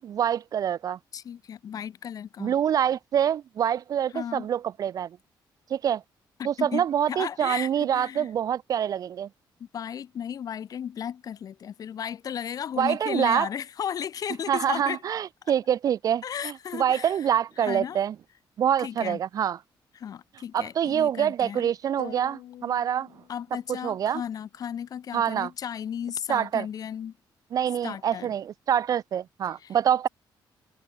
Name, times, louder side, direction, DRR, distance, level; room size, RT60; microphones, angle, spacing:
voice 1, 0.0-1.0 2.4-5.1 5.7-6.0 6.4-9.3 12.8-13.5 14.5-18.1 18.6-19.6 20.5-23.1 23.7-24.2 25.1-25.5 26.3-26.7 27.5-30.1, right 9 dB, 45° right, 0.4 m, -26 dB
voice 2, 1.1-2.5 4.1-4.5 6.4-8.3 9.6-15.0 16.2-17.1 17.6-18.0 18.8-19.2 19.9-21.7 23.3-27.1 27.8-28.3 29.6-29.8, left 8 dB, 50° left, 2.5 m, -35 dB
sound 1, 22.0-24.0, left 12 dB, 80° left, 5.5 m, -45 dB
cardioid pair, 175°, 8 cm